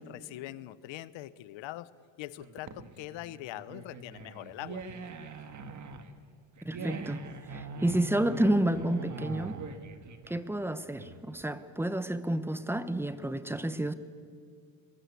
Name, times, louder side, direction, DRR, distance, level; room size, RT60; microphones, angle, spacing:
voice 1, 0.1-1.9 2.2-4.8, left 15 dB, 75° left, 18 dB, 1.0 m, -42 dB
sound 1, 2.4-11.4, right 4 dB, 40° right, 1.8 m, -42 dB
voice 2, 6.6-7.2 7.5-9.6 10.3-13.9, right 1 dB, 5° right, 12 dB, 0.9 m, -30 dB
23.0 x 21.5 x 8.4 m, 2.2 s
cardioid pair, 140°, 45 cm